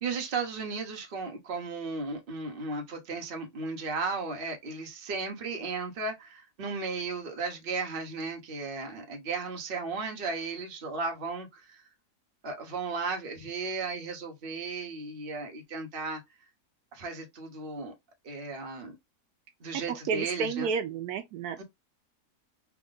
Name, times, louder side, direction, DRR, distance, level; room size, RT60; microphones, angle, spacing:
voice 1, 0.0-11.8 12.4-16.2 16.9-17.9 18.2-19.0 19.6-20.7 21.6-21.7, right 4 dB, 40° right, 1.0 m, -35 dB
voice 2, 19.9-21.6, right 6 dB, 80° right, 1.1 m, -31 dB
3.5 x 2.5 x 3.8 m
omnidirectional pair, 1.7 m